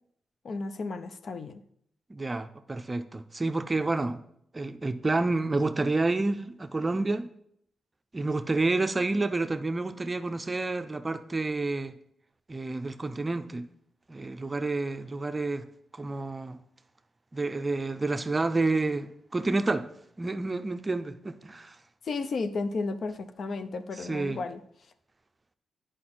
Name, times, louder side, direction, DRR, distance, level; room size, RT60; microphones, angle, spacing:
voice 1, 0.4-1.6 22.0-24.6, left 3 dB, 60° left, 0.6 m, -33 dB
voice 2, 2.1-4.2 4.5-7.3 8.1-12.0 12.5-13.7 14.1-15.7 15.9-16.6 17.3-19.9 20.2-21.7 24.1-24.4, right 2 dB, 25° right, 0.5 m, -29 dB
9.6 x 5.0 x 4.3 m
cardioid pair, 70°, 0 cm